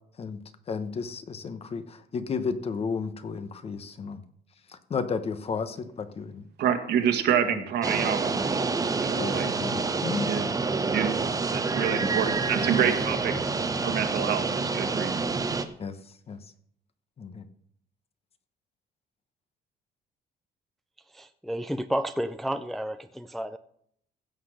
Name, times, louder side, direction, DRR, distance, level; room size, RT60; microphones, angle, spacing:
voice 1, 0.7-4.2 4.7-6.4 7.5-7.6 9.2-10.3 12.0-12.1 15.8-16.4 17.2-17.5, left 5 dB, 35° left, 11 dB, 1.0 m, -33 dB
voice 2, 6.6-9.5 10.3-10.5 10.9-13.3 13.8-15.3, right 8 dB, 70° right, 6 dB, 1.9 m, -28 dB
sound 1, 7.8-15.6, right 4 dB, 20° right, 0.9 m, -28 dB
voice 3, 21.1-23.6, equal, ahead, 9 dB, 0.4 m, -31 dB
16.0 x 5.8 x 6.5 m, 0.67 s
cardioid pair, 155°, 18 cm